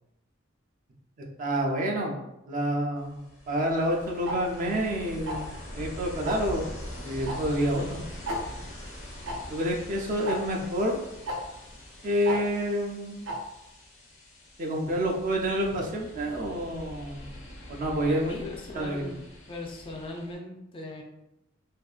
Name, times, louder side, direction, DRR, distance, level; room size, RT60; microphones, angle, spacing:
voice 1, 1.4-2.2 2.5-6.7 7.0-8.0 9.5-11.0 12.0-13.3 14.6-17.3 17.7-18.3 18.8-19.2, equal, 45° right, 0 dB, 0.4 m, -28 dB
Ocean, 3.0-20.3, left 1 dB, 90° left, 0.9 m, -43 dB
Tick-tock, 4.3-4.4 5.3-5.5 6.3-6.5 7.3-7.4 7.6-7.7 8.3-8.4 9.3-9.4 10.3-10.4 11.3-11.4 12.3-12.4 13.3-13.4, right 1 dB, 90° right, 0.6 m, -31 dB
voice 2, 18.0-19.2 19.5-21.0, left 2 dB, 25° left, 1 dB, 0.3 m, -39 dB
2.6 x 2.3 x 2.3 m, 0.89 s
head